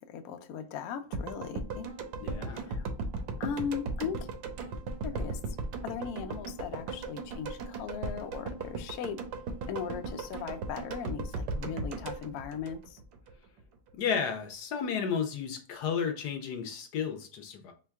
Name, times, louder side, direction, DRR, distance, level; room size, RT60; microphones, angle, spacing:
voice 1, 0.0-1.9 2.5-2.9 3.4-4.3 5.0-5.4 5.8-9.2 9.7-13.0, left 7 dB, 90° left, 0.8 m, -38 dB
sound 1, 1.1-13.3 13.6-13.7, right 3 dB, 75° right, 1.3 m, -37 dB
voice 2, 2.2-2.7 13.9-17.7, left 6 dB, 70° left, 1.0 m, -33 dB
4.5 x 2.2 x 3.4 m
omnidirectional pair, 2.1 m